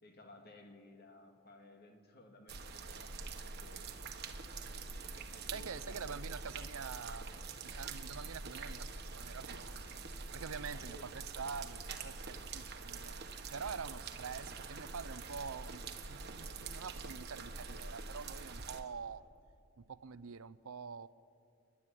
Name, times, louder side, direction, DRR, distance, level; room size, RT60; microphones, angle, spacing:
voice 1, 0.0-3.9 5.1-6.2 10.7-11.1, left 1 dB, 45° left, 4 dB, 2.4 m, -57 dB
sound 1, 2.5-18.8, right 4 dB, 45° right, 1.4 m, -45 dB
voice 2, 5.5-7.3 7.6-9.8 10.3-13.1 13.5-15.8 16.1-19.2 19.8-21.1, right 5 dB, 70° right, 17 dB, 0.6 m, -46 dB
29.0 x 11.5 x 9.9 m, 2.4 s
head